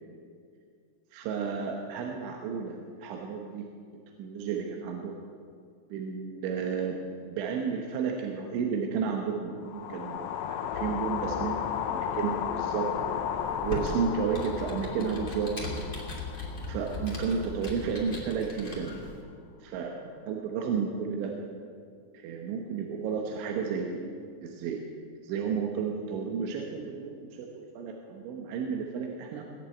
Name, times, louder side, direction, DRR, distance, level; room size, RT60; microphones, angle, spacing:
voice 1, 1.1-3.7 4.2-5.3 5.9-7.0 7.3-13.2 13.6-15.8 16.7-19.0 19.6-20.0 20.3-21.4 22.1-24.1 24.4-24.8 25.2-29.4, right 6 dB, 75° right, 1 dB, 3.3 m, -32 dB
sound 1, 9.6-17.9, left 9 dB, 85° left, 3.3 m, -34 dB
sound 2, 10.7-16.0, left 4 dB, 70° left, 4.0 m, -45 dB
Computer keyboard, 13.4-19.2, left 2 dB, 45° left, 0.6 m, -38 dB
18.5 x 7.4 x 8.9 m, 2.3 s
omnidirectional pair, 5.6 m